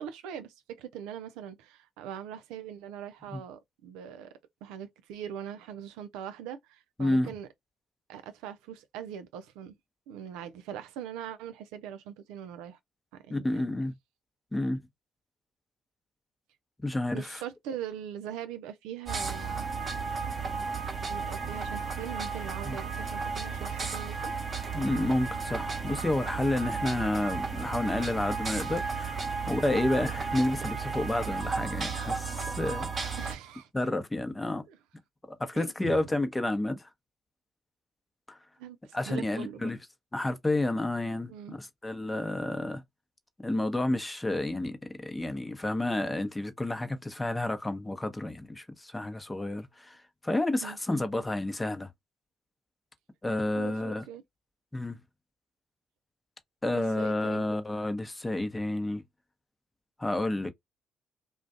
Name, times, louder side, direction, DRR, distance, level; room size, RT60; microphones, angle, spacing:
voice 1, 0.0-4.3 4.6-7.5 8.1-9.8 10.1-12.8 13.1-13.7 17.1-19.7 21.1-24.3 29.7-29.9 33.2-33.7 34.7-34.8 35.5-36.0 38.6-39.7 41.3-41.6 50.6-50.8 53.5-54.2 56.7-57.5, right 9 dB, 80° right, 0.4 m, -42 dB
voice 2, 7.0-7.3 13.3-13.9 14.5-14.8 16.8-17.4 22.6-22.8 24.7-33.2 33.7-34.6 35.3-36.9 38.3-38.4 38.9-39.8 40.1-42.8 43.4-50.0 50.2-51.9 53.2-54.0 54.7-55.0 56.6-59.0 60.0-60.5, left 1 dB, 15° left, 0.7 m, -30 dB
sound 1, 19.1-33.3, right 5 dB, 40° right, 0.9 m, -34 dB
2.4 x 2.2 x 2.5 m
hypercardioid pair, 50°, 0 cm